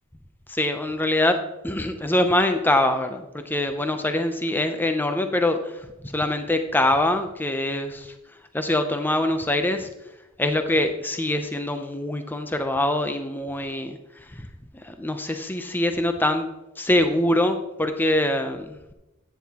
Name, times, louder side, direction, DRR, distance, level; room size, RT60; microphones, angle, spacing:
voice 1, 0.5-8.2 8.5-9.9 10.4-14.5 14.7-16.5 16.8-18.9, left 1 dB, 10° left, 7 dB, 0.5 m, -24 dB
11.0 x 9.3 x 2.9 m, 0.96 s
head